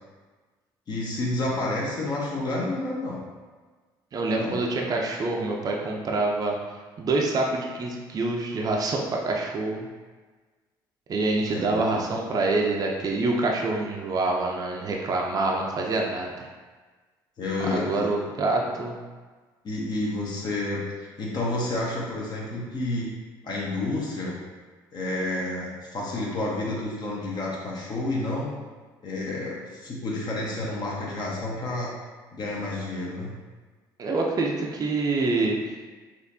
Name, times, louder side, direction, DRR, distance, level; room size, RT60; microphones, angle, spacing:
voice 1, 0.9-3.2 4.4-4.6 11.5-11.8 12.1-12.2 17.4-18.1 19.6-23.1 23.4-24.3 24.9-28.6 29.0-31.9 32.3-33.3, left 2 dB, 45° left, -4 dB, 1.0 m, -30 dB
voice 2, 4.1-6.6 7.0-9.9 11.1-16.5 17.7-19.0 34.0-35.6, right 2 dB, 40° right, 0 dB, 0.6 m, -26 dB
4.2 x 2.6 x 2.7 m, 1.4 s
supercardioid pair, 75°, 10 cm